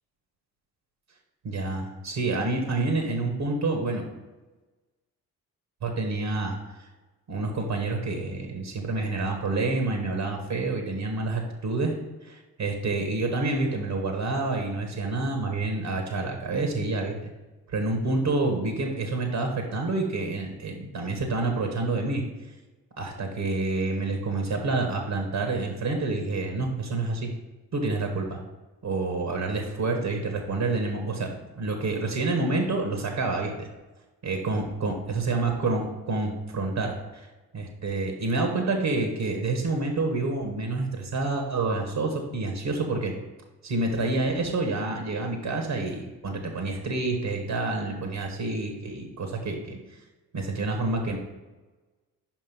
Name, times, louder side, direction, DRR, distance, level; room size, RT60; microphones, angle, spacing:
voice 1, 1.4-4.1 5.8-6.6 7.3-12.0 12.2-17.2 17.7-22.2 23.0-27.3 27.7-28.4 28.8-33.7 34.2-37.3 37.5-43.1 43.6-49.8 50.3-51.2, right 3 dB, 70° right, 3 dB, 1.4 m, -28 dB
5.4 x 5.4 x 5.3 m, 1.2 s
supercardioid pair, 45°, 40 cm